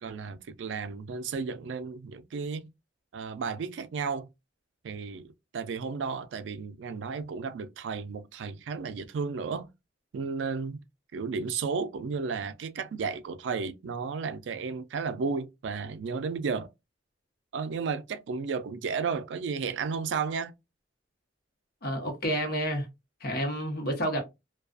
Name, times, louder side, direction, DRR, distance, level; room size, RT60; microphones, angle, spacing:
voice 1, 0.0-2.7 3.1-4.3 4.8-9.7 10.1-10.8 11.1-16.7 17.5-20.5, right 5 dB, 80° right, 0.3 m, -33 dB
voice 2, 21.8-22.9 23.2-24.2, equal, 60° left, 0.9 m, -29 dB
2.3 x 2.2 x 2.4 m
head